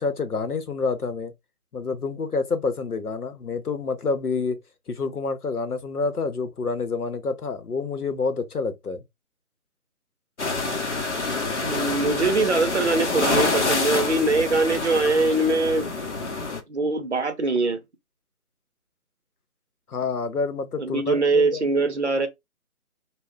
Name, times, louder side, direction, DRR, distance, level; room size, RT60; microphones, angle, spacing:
voice 1, 0.0-1.3 1.7-4.6 4.9-9.0 19.9-21.7, left 4 dB, 80° left, 0.8 m, -28 dB
sound 1, 10.4-16.6, left 3 dB, 50° left, 0.8 m, -27 dB
voice 2, 11.6-15.9 16.7-17.8 20.8-22.3, right 3 dB, 50° right, 0.6 m, -22 dB
2.2 x 2.1 x 3.6 m
figure-of-eight pair, 150°, 44 cm